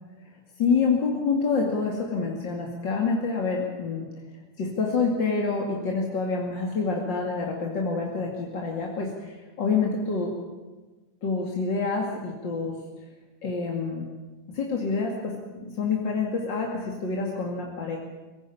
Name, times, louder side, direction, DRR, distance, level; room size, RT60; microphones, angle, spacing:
voice 1, 0.6-4.1 4.6-10.4 11.2-12.8 13.4-14.0 14.5-18.0, left 4 dB, 80° left, -1 dB, 3.2 m, -27 dB
24.5 x 16.5 x 8.7 m, 1.3 s
omnidirectional pair, 2.0 m